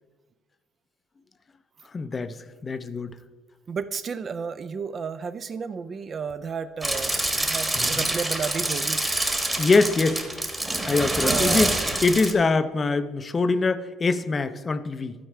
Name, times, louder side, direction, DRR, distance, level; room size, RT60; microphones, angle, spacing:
voice 1, 1.9-2.4 2.6-3.1 7.8-8.1 9.6-10.2 10.9-11.8 12.0-15.1, left 3 dB, 25° left, 13 dB, 0.5 m, -23 dB
voice 2, 3.7-9.0 11.2-11.7, right 6 dB, 35° right, 12 dB, 0.4 m, -32 dB
sound 1, 6.8-12.3, right 1 dB, 10° right, 1.2 m, -26 dB
12.0 x 4.4 x 4.9 m, 1.3 s
cardioid pair, 100°, 0 cm